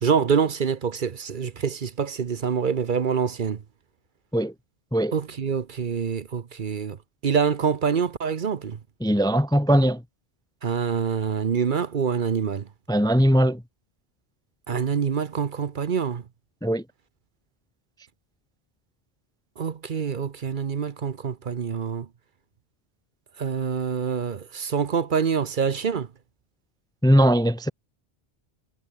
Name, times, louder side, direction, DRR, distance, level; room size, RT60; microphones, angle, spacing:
voice 1, 0.0-3.6 5.1-7.0 7.2-8.8 10.6-12.7 14.7-16.2 19.6-22.1 23.4-26.1, right 6 dB, 55° right, 1.0 m, -26 dB
voice 2, 9.0-10.0 12.9-13.6 16.6-16.8 27.0-27.7, equal, 5° left, 0.6 m, -20 dB
omnidirectional pair, 1.1 m